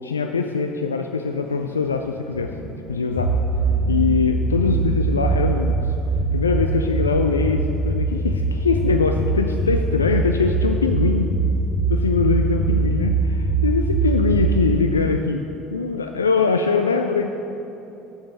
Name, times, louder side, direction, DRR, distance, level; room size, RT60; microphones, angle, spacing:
voice 1, 0.0-2.5 2.9-3.3 3.9-5.8 6.3-11.3 11.9-17.3, left 4 dB, 85° left, 5 dB, 0.3 m, -22 dB
sound 1, 2.1-14.7, right 3 dB, 70° left, 1.0 m, -22 dB
7.1 x 7.0 x 6.5 m, 3.0 s
figure-of-eight pair, 65°, 0 cm